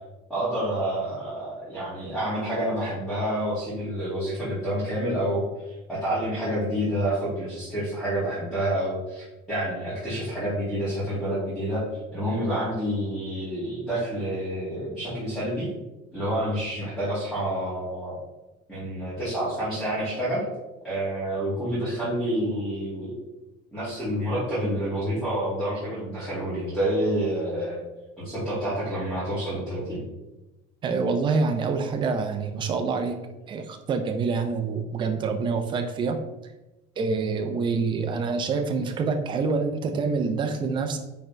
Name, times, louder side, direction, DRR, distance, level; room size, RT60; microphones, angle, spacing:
voice 1, 0.3-11.8 12.1-15.7 16.1-18.2 18.7-20.4 20.8-23.2 23.7-27.8 28.2-30.0, right 1 dB, ahead, -13 dB, 2.3 m, -28 dB
voice 2, 30.8-33.2 33.5-36.2 37.0-41.0, right 4 dB, 25° right, 5 dB, 0.6 m, -26 dB
9.1 x 3.9 x 3.3 m, 1.0 s
cardioid pair, 170°, 19 cm